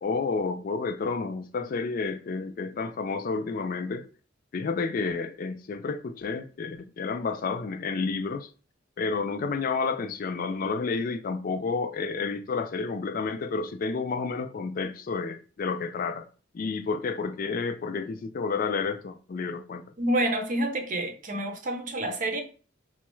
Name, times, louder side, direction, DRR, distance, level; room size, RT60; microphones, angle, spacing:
voice 1, 0.0-4.1 4.5-8.5 9.0-16.3 16.5-19.8, left 4 dB, 45° left, 0.3 m, -30 dB
voice 2, 20.0-22.4, right 1 dB, 40° right, 0.6 m, -28 dB
4.1 x 2.3 x 3.0 m
head